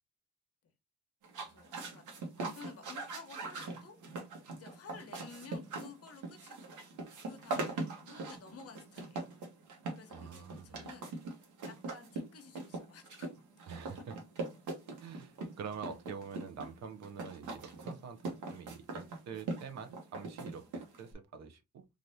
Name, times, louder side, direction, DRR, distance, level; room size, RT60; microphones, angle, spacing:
sound 1, 1.2-21.1, right 3 dB, 80° right, 1.0 m, -42 dB
voice 1, 1.4-4.0 4.5-6.7 7.2-9.2 10.0-11.1 11.6-13.3, left 5 dB, 50° left, 0.9 m, -52 dB
voice 2, 10.1-10.9 13.7-14.2 15.0-21.9, right 6 dB, 60° right, 0.6 m, -46 dB
3.3 x 2.5 x 2.6 m
cardioid pair, 90°, 30 cm